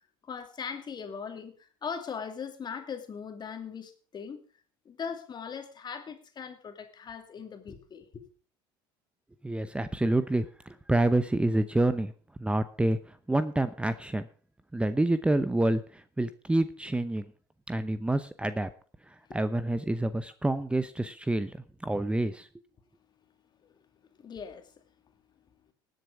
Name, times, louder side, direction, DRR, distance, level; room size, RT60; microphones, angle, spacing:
voice 1, 0.2-4.4 4.8-8.2 19.6-19.7 23.6-23.7 24.2-24.7, left 6 dB, 40° left, 2.4 m, -40 dB
voice 2, 9.4-12.1 12.4-14.3 14.7-17.3 17.7-18.7 19.3-21.6 21.8-22.5, right 1 dB, 10° right, 0.8 m, -28 dB
18.5 x 7.8 x 5.0 m
supercardioid pair, 80°, 12 cm